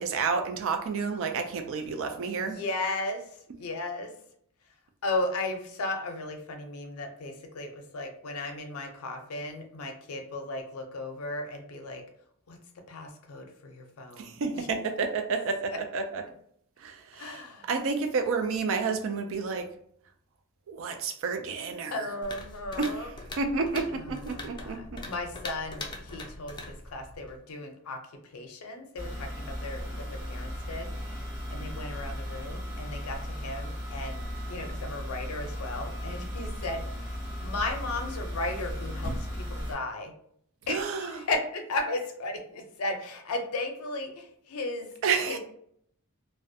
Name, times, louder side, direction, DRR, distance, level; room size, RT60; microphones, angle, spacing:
voice 1, 0.0-2.6 14.2-16.2 16.8-19.7 20.7-22.1 22.8-25.0 40.7-41.2 45.0-45.4, right 4 dB, 65° right, 6 dB, 0.4 m, -30 dB
voice 2, 2.4-4.1 5.0-12.0 12.5-12.6 12.9-14.7 17.1-17.7 21.9-23.1 23.9-28.0 28.3-40.1 40.7-44.9 45.2-45.4, left 2 dB, 80° left, 5 dB, 0.5 m, -35 dB
sound 1, 22.2-27.4, left 2 dB, 20° left, 0.3 m, -42 dB
sound 2, 29.0-39.7, equal, 15° right, 1.1 m, -36 dB
2.4 x 2.1 x 2.6 m, 0.67 s
head